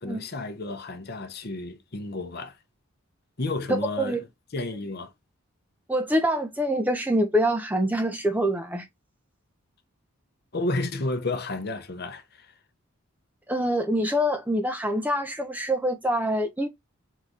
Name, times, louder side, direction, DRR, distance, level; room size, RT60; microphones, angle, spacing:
voice 1, 0.0-2.6 3.4-4.2 4.5-5.1 10.5-12.5, left 2 dB, 45° left, 0.8 m, -31 dB
voice 2, 3.7-4.2 5.9-8.9 13.5-16.7, equal, 5° right, 0.5 m, -25 dB
3.7 x 3.2 x 3.9 m
head